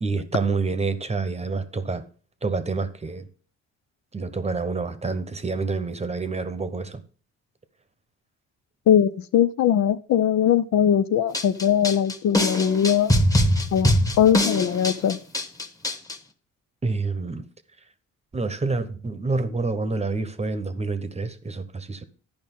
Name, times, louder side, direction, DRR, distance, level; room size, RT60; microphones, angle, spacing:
voice 1, 0.0-2.0 2.4-3.3 4.1-7.0 16.8-17.4 18.3-22.0, right 3 dB, 20° right, 1.0 m, -27 dB
voice 2, 8.9-13.1 13.7-15.2, left 9 dB, 65° left, 0.6 m, -20 dB
sound 1, 11.3-16.1, left 1 dB, 10° left, 1.3 m, -22 dB
11.5 x 5.2 x 5.4 m
cardioid pair, 90°, 30 cm